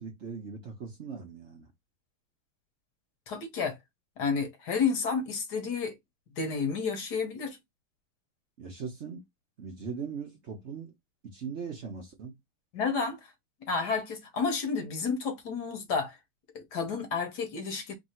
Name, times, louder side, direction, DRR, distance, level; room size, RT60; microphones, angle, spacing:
voice 1, 0.0-1.7 8.6-9.2 9.6-10.9 11.2-12.3, right 5 dB, 60° right, 0.7 m, -39 dB
voice 2, 3.3-3.8 4.2-6.0 6.4-7.6 12.7-13.3 13.6-16.2 16.5-17.9, left 5 dB, 55° left, 1.4 m, -31 dB
3.6 x 2.8 x 4.3 m
omnidirectional pair, 2.3 m